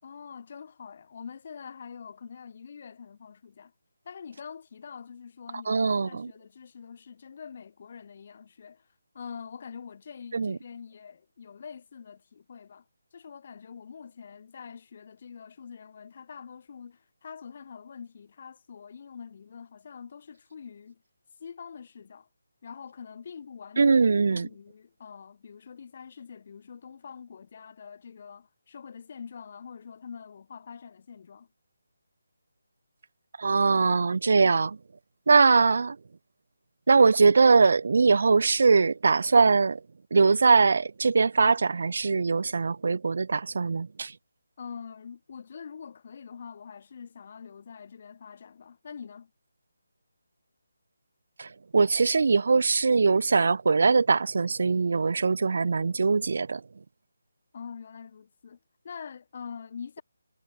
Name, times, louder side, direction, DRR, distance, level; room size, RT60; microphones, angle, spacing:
voice 1, 0.0-3.7 4.0-8.9 9.1-12.9 13.1-21.0 21.4-22.3 22.6-23.9 24.3-31.5 44.6-49.3 57.5-58.6 58.8-60.0, left 6 dB, 40° left, 5.6 m, -44 dB
voice 2, 5.7-6.3 10.3-10.6 23.8-24.5 33.4-34.8 35.3-36.0 36.9-39.8 40.1-44.1 51.4-56.6, right 4 dB, 55° right, 1.5 m, -22 dB
figure-of-eight pair, 155°, 0 cm